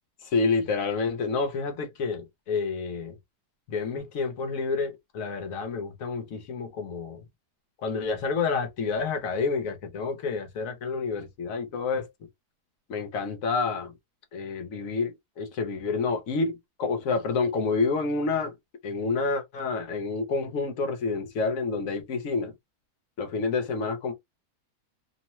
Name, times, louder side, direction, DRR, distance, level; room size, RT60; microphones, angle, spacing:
voice 1, 0.2-3.2 3.7-7.2 7.8-12.1 12.9-13.9 14.3-18.5 18.8-22.5 23.2-24.1, left 4 dB, 60° left, 1.0 m, -29 dB
3.0 x 2.1 x 2.8 m
omnidirectional pair, 1.8 m